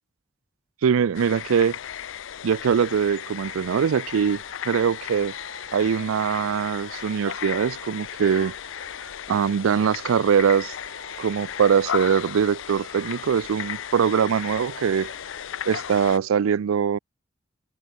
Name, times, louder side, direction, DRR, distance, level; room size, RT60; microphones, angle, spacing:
voice 1, 0.8-1.8 2.4-5.3 5.7-8.5 9.3-10.7 11.2-15.1 15.7-17.0, right 7 dB, 90° right, 0.4 m, -22 dB
sound 1, 1.1-16.2, left 9 dB, 70° left, 0.5 m, -35 dB
Dog / Alarm, 3.4-9.3 9.6-12.3 12.6-15.4, right 5 dB, 70° right, 2.6 m, -49 dB
head